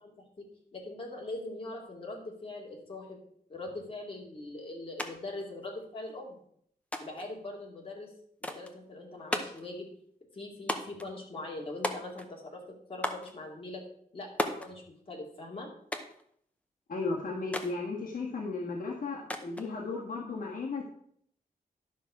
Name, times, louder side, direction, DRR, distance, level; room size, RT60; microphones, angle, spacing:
voice 1, 0.0-0.5 0.7-3.2 3.5-6.4 7.0-8.1 8.4-9.9 10.3-12.6 12.9-13.8 14.1-15.7, left 2 dB, 35° left, -1 dB, 2.3 m, -42 dB
sound 1, 5.0-5.1 5.4-6.1 6.9-7.3 8.4-8.8 9.3-9.7 10.7-11.1 11.8-12.4 13.0-13.3 14.4-14.7 15.9-16.2 17.5-17.8 19.3-19.7, left 1 dB, 10° left, 0.7 m, -35 dB
voice 2, 16.9-20.8, left 3 dB, 60° left, -3 dB, 1.6 m, -35 dB
11.5 x 5.9 x 4.8 m, 0.67 s
wide cardioid pair, 170°, 16 cm